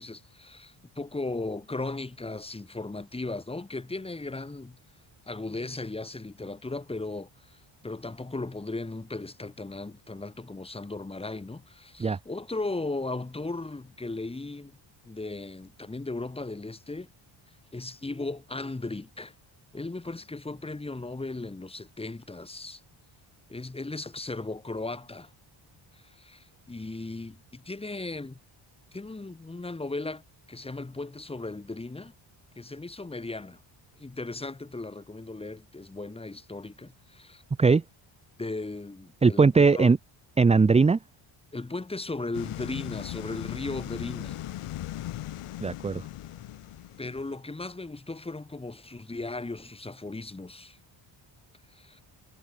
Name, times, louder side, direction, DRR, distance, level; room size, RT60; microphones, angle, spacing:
voice 1, 0.0-4.8 5.3-14.8 15.0-17.1 17.7-19.3 19.7-22.8 23.5-25.3 25.9-28.4 28.9-30.2 30.5-32.1 32.6-33.6 34.0-37.4 38.4-39.9 41.5-44.4 47.0-50.8 51.7-52.0, left 2 dB, 10° left, 1.2 m, -37 dB
voice 2, 39.2-40.0 40.4-41.0 45.6-46.0, right 4 dB, 15° right, 0.5 m, -19 dB
sound 1, 42.3-47.4, left 13 dB, 90° left, 5.8 m, -38 dB
cardioid pair, 130°, 50 cm